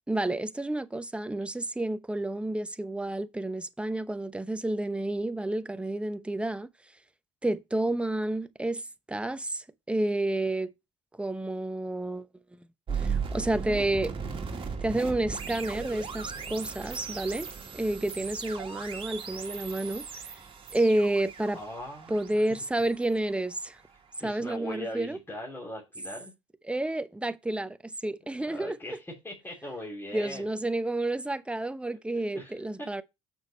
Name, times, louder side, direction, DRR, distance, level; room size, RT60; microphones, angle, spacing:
voice 1, 0.1-6.7 7.4-8.8 9.1-10.7 11.2-12.3 12.9-14.1 14.8-17.5 17.7-20.1 20.7-21.6 22.1-23.8 24.2-25.2 26.7-29.0 30.1-33.0, right 1 dB, 5° right, 0.9 m, -30 dB
sound 1, 12.9-23.9, right 5 dB, 35° right, 1.9 m, -37 dB
voice 2, 21.5-22.4 24.2-26.3 28.3-30.5 31.9-32.9, left 1 dB, 15° left, 3.3 m, -40 dB
7.2 x 6.2 x 4.3 m
hypercardioid pair, 65°, 15 cm